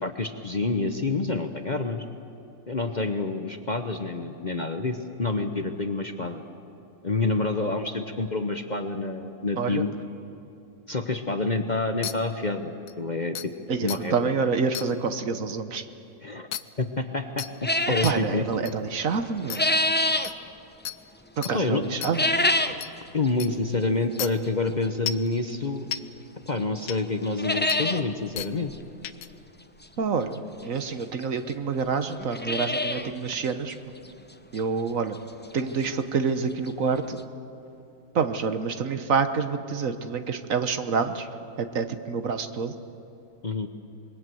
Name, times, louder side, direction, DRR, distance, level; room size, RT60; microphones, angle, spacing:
voice 1, 0.0-2.1 2.7-6.4 7.0-9.9 10.9-13.4 13.8-14.1 16.2-16.5 16.8-18.5 21.5-21.8 23.1-25.9 26.5-28.7 43.4-43.7, left 3 dB, 35° left, 7 dB, 0.9 m, -28 dB
sound 1, 12.0-12.1 12.9-13.0 13.4-13.5 13.9-14.0 14.7-14.9 16.5-16.6 17.4-17.5 18.0-18.1 18.7-18.8 19.5-19.6 20.2-20.3 20.9-21.0 21.4-21.5 22.0-22.1 22.8-22.9 23.4-23.5 24.2-24.3 25.1-25.3 25.9-26.0 26.9-27.0 27.7-27.8 28.4-28.5 29.0-29.3, left 11 dB, 80° left, 1.3 m, -32 dB
voice 2, 13.7-15.8 18.0-19.6 21.4-22.3 30.0-33.8 34.5-35.2 35.5-37.2 38.1-41.3 41.6-42.7, right 5 dB, 60° right, 9 dB, 1.4 m, -27 dB
sound 2, 17.6-18.2 19.2-20.3 22.0-22.8 23.2-23.3 24.2-24.3 25.9-26.0 26.5-26.6 26.8-26.9 27.2-28.0 28.4-28.5 28.7-28.8 30.3-30.4 31.2-31.3 31.5-31.6 32.1-33.1 33.5-33.6 34.1-34.2 34.6-34.7 36.4-36.5 36.7-36.8 37.2-37.3, left 1 dB, 15° left, 0.4 m, -25 dB
26.0 x 21.5 x 7.7 m, 2.8 s
omnidirectional pair, 1.7 m